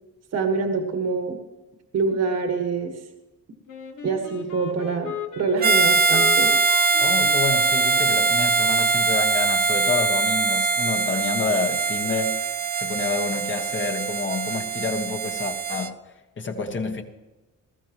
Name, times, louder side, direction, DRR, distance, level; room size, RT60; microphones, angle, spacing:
voice 1, 0.3-1.4 1.9-3.0 4.0-6.6, right 4 dB, 55° right, 1.7 m, -25 dB
Wind instrument woodwind instrument, 3.7-8.8, left 7 dB, 75° left, 1.6 m, -37 dB
Harmonica, 5.6-15.9, right 4 dB, 30° right, 0.6 m, -22 dB
voice 2, 7.0-12.5 12.8-16.0 16.4-17.0, left 4 dB, 40° left, 1.4 m, -28 dB
20.0 x 14.5 x 3.1 m
cardioid pair, 135°, 30 cm